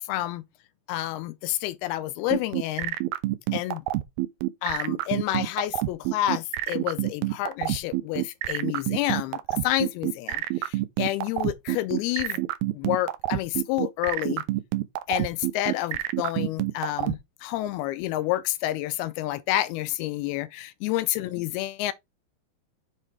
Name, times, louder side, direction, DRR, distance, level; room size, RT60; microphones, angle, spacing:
voice 1, 0.1-0.4 0.9-3.0 3.5-3.8 4.6-12.4 12.7-14.4 15.1-21.9, left 15 dB, 80° left, 2.4 m, -29 dB
sound 1, 2.3-17.2, right 16 dB, 85° right, 2.1 m, -27 dB
7.6 x 3.3 x 4.6 m
omnidirectional pair, 4.8 m